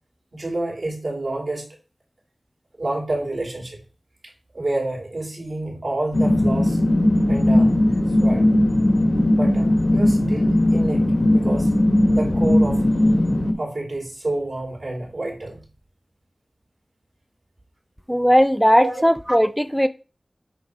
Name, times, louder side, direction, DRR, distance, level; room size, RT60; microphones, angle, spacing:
voice 1, 0.3-1.7 2.8-3.8 4.5-6.8 7.3-7.8 8.2-8.5 9.3-11.7 12.1-12.8 13.6-15.6 18.7-19.0, right 2 dB, 60° right, -1 dB, 3.1 m, -28 dB
sound 1, 6.1-13.5, left 1 dB, 55° left, 1.8 m, -18 dB
voice 2, 18.1-19.9, equal, ahead, 10 dB, 0.5 m, -17 dB
7.9 x 3.2 x 5.9 m, 0.34 s
wide cardioid pair, 50°, 0 cm